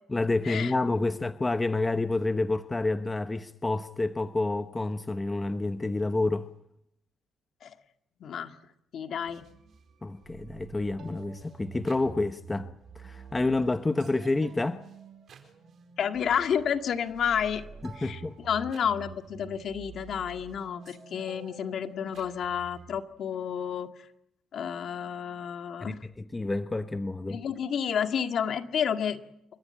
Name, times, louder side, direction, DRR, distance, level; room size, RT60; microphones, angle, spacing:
voice 1, 0.1-6.5 10.0-12.7 12.9-14.8 17.8-18.4 25.8-27.4, left 2 dB, 20° left, 1.0 m, -29 dB
voice 2, 8.2-8.5 8.9-9.5 16.0-17.6 18.0-23.9 24.5-26.0 27.3-29.2, left 8 dB, 60° left, 2.0 m, -30 dB
sound 1, 9.3-23.0, right 6 dB, 55° right, 4.8 m, -48 dB
29.0 x 14.5 x 8.8 m
supercardioid pair, 80°, 0 cm